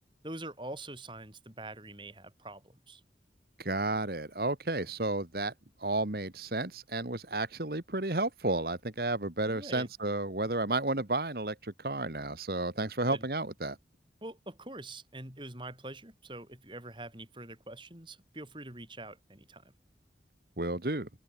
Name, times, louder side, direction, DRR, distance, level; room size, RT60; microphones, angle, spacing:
voice 1, 0.2-3.0 9.5-9.9 13.0-13.2 14.2-19.7, right 2 dB, 25° right, 7.1 m, -44 dB
voice 2, 3.6-5.5 5.8-13.8 20.6-21.1, right 2 dB, 60° right, 1.9 m, -32 dB
head